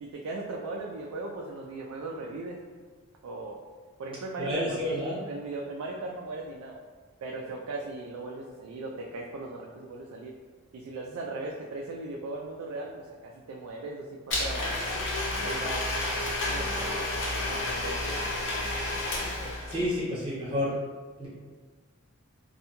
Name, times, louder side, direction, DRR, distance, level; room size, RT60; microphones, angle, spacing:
voice 1, 0.0-2.6 3.2-3.6 4.0-4.8 5.1-6.8 7.2-10.3 10.7-14.7 15.4-15.9 16.5-17.1 17.5-18.2, right 2 dB, 80° right, -1 dB, 0.3 m, -38 dB
voice 2, 4.4-5.2 19.7-20.7 21.2-21.3, left 1 dB, 25° right, -8 dB, 0.9 m, -29 dB
Domestic sounds home sounds, 14.3-20.0, left 2 dB, 60° left, 0.5 m, -30 dB
2.6 x 2.2 x 2.8 m, 1.5 s
head